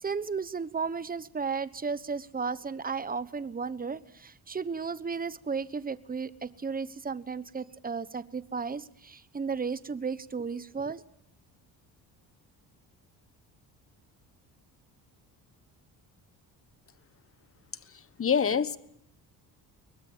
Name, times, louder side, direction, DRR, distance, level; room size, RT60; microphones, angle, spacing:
voice 1, 0.0-11.0, right 5 dB, 20° right, 1.1 m, -34 dB
voice 2, 18.2-18.8, left 7 dB, 30° left, 1.3 m, -25 dB
22.5 x 20.0 x 7.3 m
cardioid pair, 90°, 41 cm